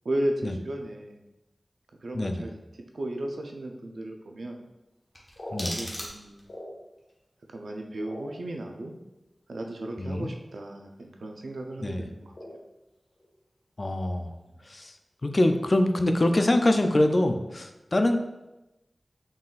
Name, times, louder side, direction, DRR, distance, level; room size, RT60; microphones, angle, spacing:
voice 1, 0.0-1.2 2.0-2.6 2.9-4.6 5.6-6.5 7.5-9.0 9.5-12.3, right 1 dB, 85° right, 3 dB, 0.5 m, -34 dB
voice 2, 2.1-2.5 5.5-5.8 10.0-10.3 11.8-12.1 13.8-14.3 14.6-15.0 15.2-18.2, left 1 dB, 45° left, 6 dB, 0.4 m, -24 dB
sound 1, 5.0-7.1 7.5-8.9 9.7-9.8 10.1-10.4 10.7-11.1 11.4-11.7 12.3-13.3 13.6-14.5 14.7-14.8 15.2-15.5 16.0-16.4, left 1 dB, 60° left, 1.3 m, -44 dB
sound 2, 5.1-6.6, equal, 30° left, 0.9 m, -38 dB
3.9 x 3.7 x 2.4 m, 0.98 s
wide cardioid pair, 65°, 0 cm